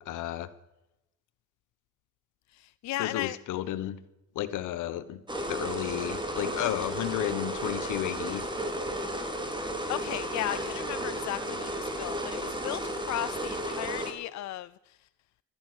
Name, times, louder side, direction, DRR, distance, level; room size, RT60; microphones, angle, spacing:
voice 1, 0.1-0.5 3.0-4.0 4.3-5.2 5.5-8.4, left 13 dB, 85° left, 1.2 m, -32 dB
voice 2, 2.5-3.4 9.9-15.0, left 14 dB, 65° left, 0.5 m, -35 dB
sound 1, 5.3-14.1, right 1 dB, 15° right, 2.9 m, -33 dB
16.5 x 13.0 x 6.2 m
cardioid pair, 90°, 30 cm